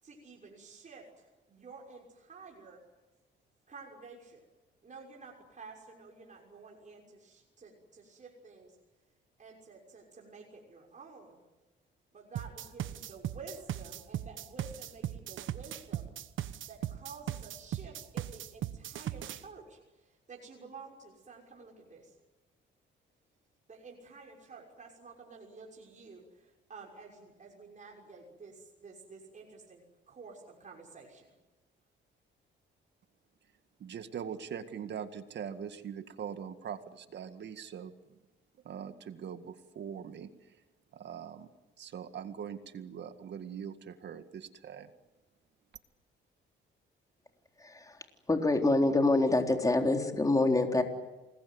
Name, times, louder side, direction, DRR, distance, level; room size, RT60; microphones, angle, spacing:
voice 1, 0.0-2.8 3.7-4.5 4.8-8.8 9.4-11.4 12.1-16.1 16.7-22.2 23.7-31.3, right 4 dB, 40° right, -1 dB, 6.2 m, -51 dB
sound 1, 12.4-19.4, right 12 dB, 75° right, 1.3 m, -38 dB
voice 2, 33.8-37.9 38.6-40.3 40.9-41.5 41.8-44.9, right 8 dB, 60° right, 9 dB, 1.9 m, -42 dB
voice 3, 47.6-48.0 48.3-50.8, left 2 dB, 15° left, 4 dB, 3.8 m, -26 dB
28.0 x 21.0 x 9.6 m, 1.1 s
cardioid pair, 90°, 20 cm